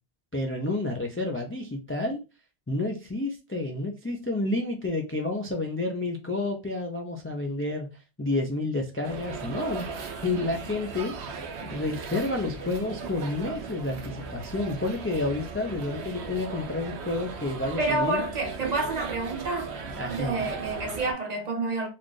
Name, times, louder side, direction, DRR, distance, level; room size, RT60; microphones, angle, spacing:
voice 1, 0.3-2.2 2.7-7.9 8.2-9.9 10.2-11.1 11.6-18.2 20.0-20.5, left 2 dB, 20° left, 0.3 m, -30 dB
sound 1, 9.0-21.1, right 4 dB, 75° right, 0.9 m, -37 dB
voice 2, 17.8-19.7 20.0-21.9, right 2 dB, 45° right, 0.8 m, -29 dB
4.1 x 2.4 x 3.2 m
omnidirectional pair, 1.1 m